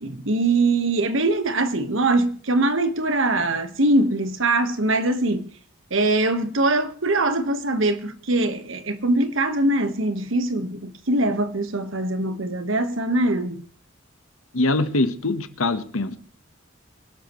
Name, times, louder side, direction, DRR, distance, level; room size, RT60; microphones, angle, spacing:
voice 1, 0.0-5.5 5.9-13.6, right 2 dB, 70° right, 1.4 m, -22 dB
voice 2, 14.5-16.2, left 2 dB, 85° left, 1.2 m, -23 dB
24.5 x 12.0 x 3.1 m
head